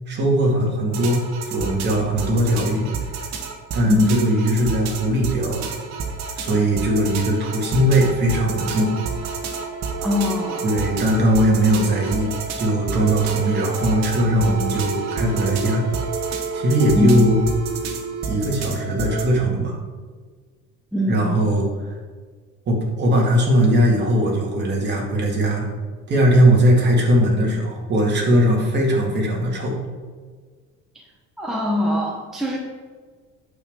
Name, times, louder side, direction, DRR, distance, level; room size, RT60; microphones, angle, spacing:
voice 1, 0.1-3.0 3.7-5.7 6.4-8.9 10.6-12.3 12.6-15.8 16.5-17.4 18.3-19.8 21.1-21.7 22.7-25.7 26.1-29.8, right 1 dB, 35° right, -2 dB, 2.1 m, -19 dB
sound 1, 0.9-19.3, right 5 dB, 55° right, 1.3 m, -29 dB
voice 2, 3.8-4.2 10.0-10.7 16.9-17.3 20.9-21.4 31.4-32.6, left 1 dB, ahead, -4 dB, 0.9 m, -23 dB
9.0 x 7.2 x 3.7 m, 1.5 s
cardioid pair, 165°, 32 cm